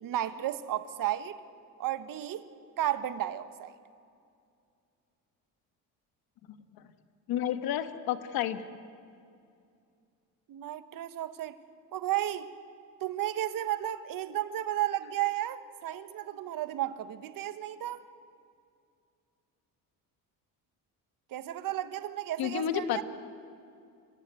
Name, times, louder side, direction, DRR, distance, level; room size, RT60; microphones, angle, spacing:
voice 1, 0.0-1.4 1.8-2.5 2.8-3.7 10.5-11.6 11.9-12.5 13.0-18.0 21.3-23.0, right 12 dB, 65° right, 12 dB, 1.3 m, -33 dB
voice 2, 7.3-8.6 22.4-23.0, left 10 dB, 75° left, 10 dB, 1.6 m, -30 dB
29.0 x 16.0 x 9.4 m, 2.4 s
cardioid pair, 100°, 36 cm